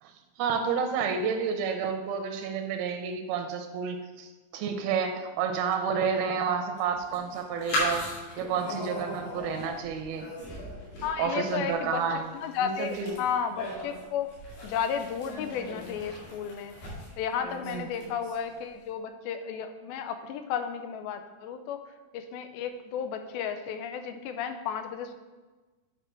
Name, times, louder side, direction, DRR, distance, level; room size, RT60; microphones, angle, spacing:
voice 1, 0.4-8.1 8.4-10.3 11.2-12.3 12.6-13.2 17.6-17.9, right 6 dB, 85° right, 6 dB, 2.6 m, -30 dB
sound 1, 6.8-18.5, left 1 dB, 70° left, 3.9 m, -38 dB
voice 2, 11.0-12.0 12.4-14.3 14.6-16.7 17.2-21.8 22.1-25.1, left 7 dB, 85° left, 8 dB, 2.4 m, -33 dB
9.1 x 4.9 x 4.5 m, 1.2 s
omnidirectional pair, 4.3 m